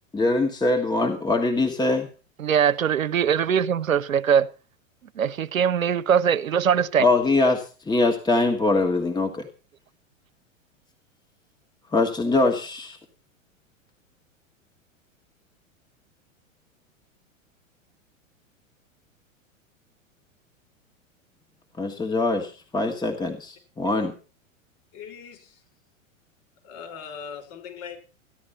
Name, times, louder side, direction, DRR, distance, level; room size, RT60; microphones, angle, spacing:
voice 1, 0.1-2.1 7.0-9.5 11.9-13.0 21.8-24.1, left 2 dB, 10° left, 1.6 m, -23 dB
voice 2, 2.4-4.5 5.2-7.0, right 8 dB, 80° right, 0.8 m, -21 dB
voice 3, 24.9-25.6 26.6-28.0, left 7 dB, 45° left, 5.7 m, -40 dB
15.0 x 11.0 x 5.6 m
figure-of-eight pair, 100°, 40 cm